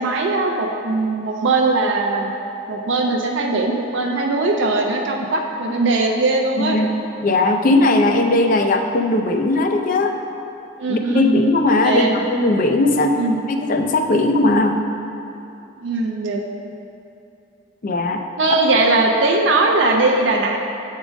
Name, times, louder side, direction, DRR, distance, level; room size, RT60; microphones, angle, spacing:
voice 1, 0.0-2.3 2.7-6.8 10.8-11.5 11.8-12.1 13.2-13.4 15.8-16.4 18.4-20.6, right 2 dB, 65° right, 1 dB, 0.4 m, -19 dB
voice 2, 6.6-6.9 7.2-10.1 10.9-13.1 13.5-14.8 17.8-18.2, left 2 dB, 40° left, 4 dB, 0.4 m, -18 dB
7.2 x 3.7 x 5.0 m, 2.8 s
head